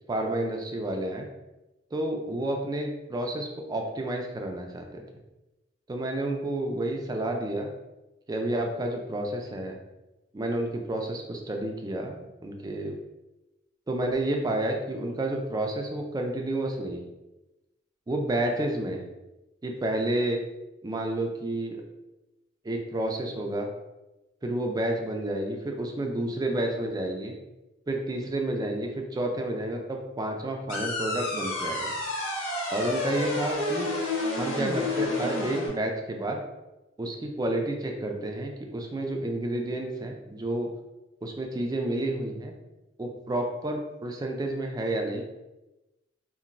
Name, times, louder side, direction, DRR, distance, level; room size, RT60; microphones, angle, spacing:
voice 1, 0.1-1.3 1.9-5.0 5.9-7.7 8.3-9.8 10.3-13.0 13.9-17.0 18.1-19.0 19.6-20.4 20.8-21.8 22.6-23.7 24.4-27.3 27.9-31.9 32.7-33.9 34.4-36.4 37.0-40.7 41.2-42.5 43.0-45.2, right 1 dB, 20° right, 2 dB, 0.3 m, -30 dB
sound 1, 30.7-35.7, left 2 dB, 85° left, 1.0 m, -30 dB
2.9 x 2.5 x 2.5 m, 1.0 s
head